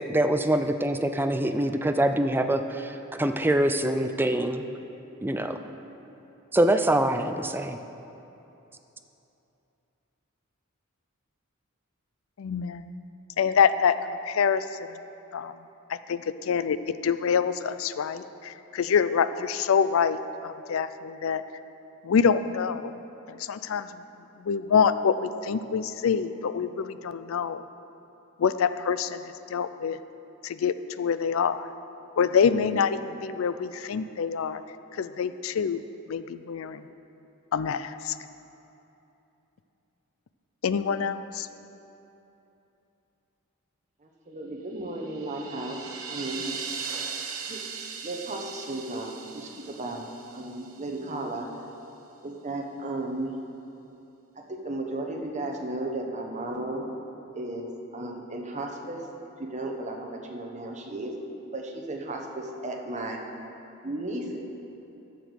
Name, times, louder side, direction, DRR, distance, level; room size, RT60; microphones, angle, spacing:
voice 1, 0.0-4.6 5.2-5.6 6.5-7.8, right 1 dB, 10° right, 7 dB, 0.4 m, -24 dB
voice 2, 12.4-12.8 13.4-14.0 14.3-14.6 15.3-15.5 16.1-16.2 16.5-20.2 20.4-21.4 22.0-22.9 23.5-23.9 24.4-27.6 28.4-29.2 29.5-30.0 30.4-31.6 32.2-34.6 35.0-35.8 36.1-36.8 37.5-38.1 40.6-41.5, left 6 dB, 70° left, 13 dB, 0.4 m, -25 dB
voice 3, 44.0-45.8 46.1-46.5 47.5-47.6 48.0-50.1 50.3-51.5 52.2-53.3 54.5-56.9 57.3-57.7 57.9-59.0 59.4-61.1 61.5-63.2 63.8-64.4, right 2 dB, 35° right, 1 dB, 1.0 m, -34 dB
sound 1, 44.9-51.1, right 5 dB, 85° right, 1.0 m, -39 dB
10.0 x 7.0 x 6.4 m, 2.9 s
head